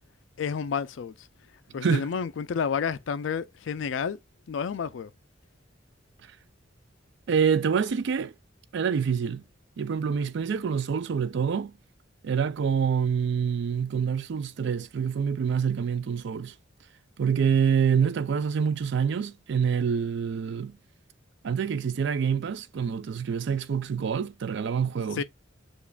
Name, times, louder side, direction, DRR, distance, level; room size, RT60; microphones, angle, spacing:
voice 1, 0.4-1.3 1.7-4.2 4.5-5.1 25.1-25.2, left 6 dB, 70° left, 0.4 m, -30 dB
voice 2, 7.3-8.3 8.7-9.4 9.8-11.7 12.2-16.5 17.2-20.8 21.4-25.2, right 6 dB, 65° right, 0.4 m, -26 dB
7.0 x 2.4 x 2.3 m
head